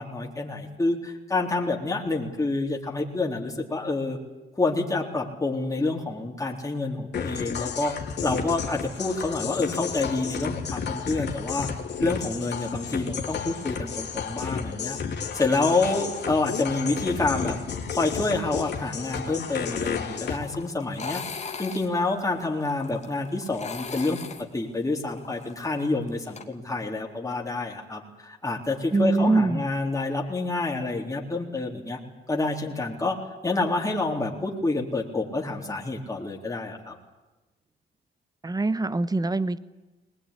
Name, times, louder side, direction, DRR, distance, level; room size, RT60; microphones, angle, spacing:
voice 1, 0.0-4.2 4.6-7.9 8.2-11.7 12.0-15.0 15.3-17.6 17.9-21.2 21.6-24.2 24.5-32.0 32.3-33.2 33.4-36.9, left 3 dB, 15° left, -1 dB, 3.8 m, -28 dB
sound 1, 7.1-20.4, left 7 dB, 60° left, 3.3 m, -32 dB
sound 2, 20.3-26.4, left 5 dB, 35° left, 2.5 m, -39 dB
voice 2, 28.9-29.6 38.4-39.6, right 3 dB, 20° right, 16 dB, 1.1 m, -23 dB
21.0 x 20.0 x 10.0 m, 1.1 s
cardioid pair, 90°, 20 cm